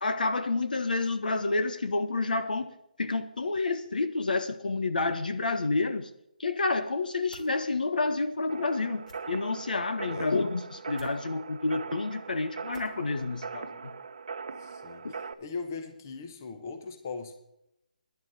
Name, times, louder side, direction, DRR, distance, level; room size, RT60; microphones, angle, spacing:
voice 1, 0.0-2.7 3.0-6.1 6.4-13.9, left 3 dB, 80° left, 1.3 m, -29 dB
sound 1, 7.3-7.5 9.0-9.2 10.9-11.2 12.7-13.0, left 1 dB, 60° left, 3.1 m, -51 dB
sound 2, 8.5-15.3, right 5 dB, 55° right, 0.8 m, -40 dB
voice 2, 14.6-17.4, left 4 dB, 25° left, 1.0 m, -39 dB
11.0 x 9.5 x 6.9 m
hypercardioid pair, 175°, 5 cm